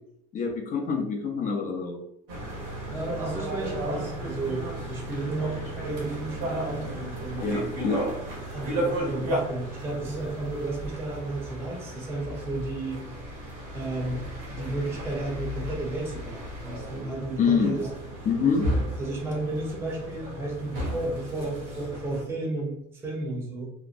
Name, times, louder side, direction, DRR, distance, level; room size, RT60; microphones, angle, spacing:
voice 1, 0.3-2.0 7.4-8.1 17.4-17.8 18.3-18.7, left 5 dB, 40° left, 2 dB, 0.5 m, -26 dB
sound 1, 2.3-22.2, right 1 dB, 85° right, 1.0 m, -34 dB
voice 2, 2.9-7.9 8.5-13.0 13.7-17.9 18.4-18.6 19.0-23.7, right 2 dB, 10° right, -2 dB, 0.6 m, -33 dB
2.8 x 2.0 x 2.4 m, 0.77 s
cardioid pair, 130°, 21 cm